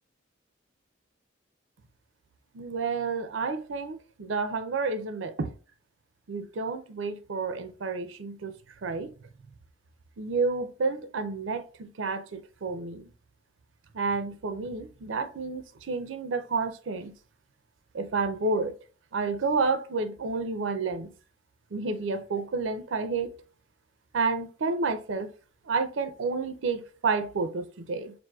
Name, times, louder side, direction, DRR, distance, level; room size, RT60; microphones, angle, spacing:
voice 1, 2.5-5.5 6.3-8.5 8.8-9.1 10.2-13.1 13.9-17.1 17.9-18.7 19.1-21.1 21.7-23.3 24.1-25.3 25.7-28.1, right 4 dB, 75° right, 0.5 m, -30 dB
6.0 x 2.6 x 2.3 m
head